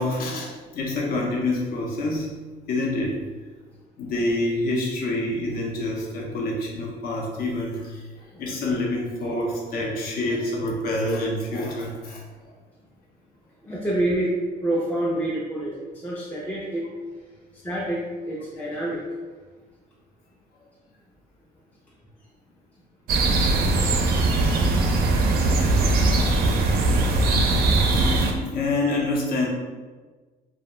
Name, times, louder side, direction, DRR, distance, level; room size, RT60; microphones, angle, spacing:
voice 1, 0.0-2.3 2.7-3.2 4.0-12.2 24.5-24.6 25.5-25.7 26.0-26.6 27.9-29.5, left 2 dB, 65° left, -1 dB, 0.7 m, -27 dB
voice 2, 13.6-14.3 14.6-16.9 17.6-19.0, right 1 dB, 10° left, -6 dB, 0.4 m, -27 dB
sound 1, 23.1-28.3, right 2 dB, 65° right, 0.4 m, -20 dB
2.4 x 2.1 x 2.9 m, 1.4 s
cardioid pair, 110°, 17 cm